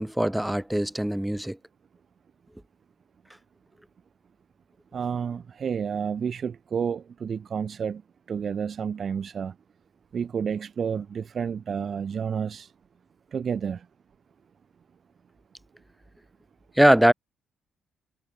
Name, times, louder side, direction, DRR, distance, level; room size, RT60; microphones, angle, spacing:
voice 1, 0.0-1.6 16.8-17.1, right 1 dB, 5° right, 0.7 m, -21 dB
voice 2, 4.9-8.0 8.3-9.5 10.1-12.7 13.3-13.9, right 7 dB, 50° right, 2.3 m, -30 dB
cardioid pair, 90°, 0 cm